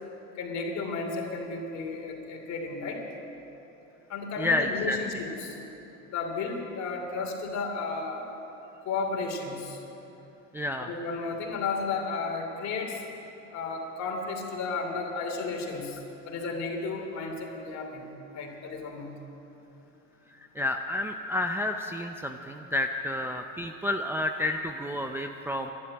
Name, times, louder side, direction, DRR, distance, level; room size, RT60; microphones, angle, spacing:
voice 1, 0.3-3.0 4.1-5.6 6.1-8.2 8.8-9.8 10.8-13.0 13.5-16.0 16.3-19.1, left 4 dB, 45° left, 1 dB, 2.9 m, -33 dB
voice 2, 4.4-5.0 10.5-10.9 20.6-25.7, left 2 dB, 5° right, 3 dB, 0.5 m, -30 dB
12.0 x 11.0 x 9.6 m, 3.0 s
supercardioid pair, 110°, 38 cm